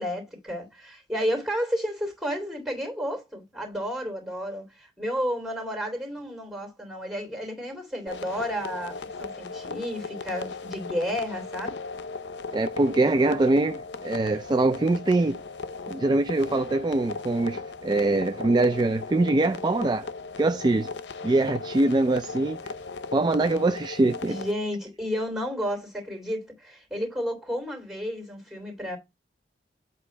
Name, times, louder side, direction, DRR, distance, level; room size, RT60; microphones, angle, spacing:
voice 1, 0.0-11.8 24.2-29.0, equal, 5° right, 3.0 m, -32 dB
sound 1, 8.1-24.5, left 4 dB, 70° left, 0.7 m, -37 dB
voice 2, 12.5-15.4 15.9-20.1 20.4-20.9 21.2-22.7 23.1-24.4, right 2 dB, 25° right, 0.3 m, -23 dB
8.1 x 2.8 x 6.1 m
head